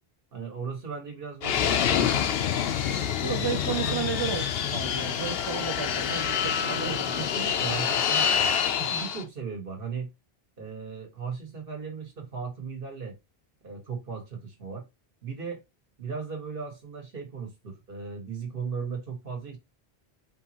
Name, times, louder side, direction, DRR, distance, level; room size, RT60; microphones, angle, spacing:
voice 1, 0.3-2.5 3.4-3.5 3.8-4.2 6.7-8.5 8.8-10.1 10.6-13.2 13.6-14.9 15.2-15.6 16.0-19.6, right 5 dB, 60° right, 1.8 m, -37 dB
Fixed-wing aircraft airplane, 1.4-9.2, left 8 dB, 70° left, 0.8 m, -27 dB
voice 2, 3.2-7.0, right 6 dB, 35° right, 0.5 m, -33 dB
5.0 x 3.1 x 2.9 m
omnidirectional pair, 1.0 m